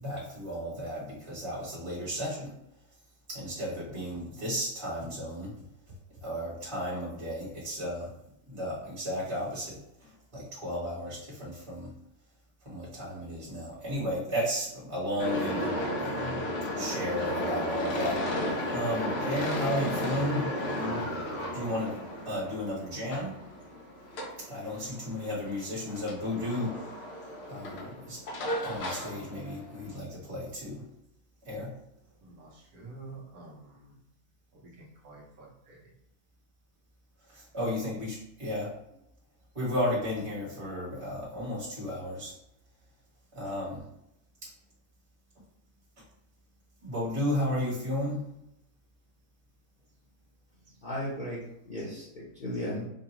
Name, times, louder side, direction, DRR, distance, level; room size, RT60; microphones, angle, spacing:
voice 1, 0.0-2.5 3.3-5.5 6.2-8.0 8.5-9.6 10.3-11.9 12.7-15.7 16.0-16.4 16.8-18.2 18.7-21.0 21.5-21.9 22.3-23.3 24.5-26.7 27.5-27.8 28.1-28.2 28.6-30.8 31.5-31.7 37.5-38.7 39.5-42.3 43.3-43.8 46.8-48.2, left 1 dB, 20° right, 1.3 m, -33 dB
sound 1, 15.2-29.9, equal, 55° left, 0.8 m, -34 dB
voice 2, 32.2-33.9 34.5-35.9, right 3 dB, 75° right, 1.4 m, -49 dB
voice 3, 50.8-52.9, left 1 dB, 35° left, 1.0 m, -36 dB
5.0 x 2.4 x 3.0 m
omnidirectional pair, 1.6 m